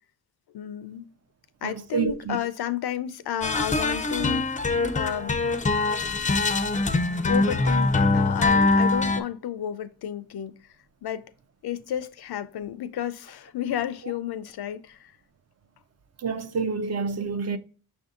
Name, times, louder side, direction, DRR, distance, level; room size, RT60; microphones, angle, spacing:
voice 1, 0.5-1.1 1.6-5.4 7.3-10.5 11.0-11.2 11.6-15.1, left 10 dB, 75° left, 0.5 m, -32 dB
voice 2, 1.6-2.4 16.2-17.6, right 5 dB, 40° right, 0.5 m, -28 dB
sound 1, 3.4-9.2, left 3 dB, 20° left, 0.4 m, -23 dB
5.6 x 2.6 x 3.6 m
cardioid pair, 80°, 39 cm